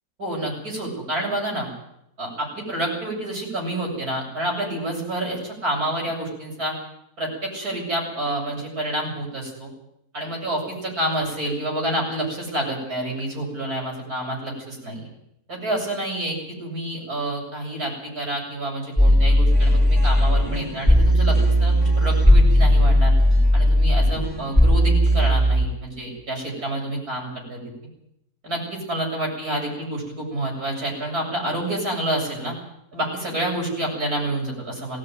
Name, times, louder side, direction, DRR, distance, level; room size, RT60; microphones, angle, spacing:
voice 1, 0.2-1.7 2.2-6.7 7.2-9.7 10.1-15.1 15.5-23.1 23.5-27.6 28.4-32.5 32.9-35.0, right 1 dB, 75° right, -1 dB, 8.4 m, -28 dB
sound 1, 19.0-25.7, equal, 15° right, 5.1 m, -17 dB
19.5 x 16.5 x 9.4 m, 0.78 s
omnidirectional pair, 1.6 m